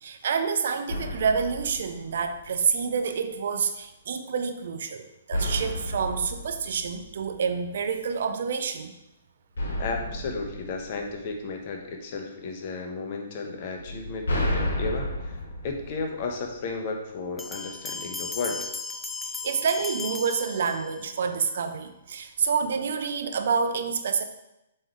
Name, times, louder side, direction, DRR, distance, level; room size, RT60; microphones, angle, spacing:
voice 1, 0.0-8.9 19.4-24.2, right 6 dB, 55° right, 7 dB, 0.5 m, -28 dB
sound 1, 0.9-2.8 5.3-7.7 9.6-11.8 13.8-16.8, equal, 60° left, 1.5 m, -32 dB
voice 2, 9.8-15.4 15.6-18.6, left 4 dB, 40° left, 2 dB, 1.0 m, -33 dB
Bell, 17.4-21.2, left 4 dB, 5° left, 0.4 m, -36 dB
7.5 x 3.2 x 4.7 m, 0.90 s
figure-of-eight pair, 120°, 0 cm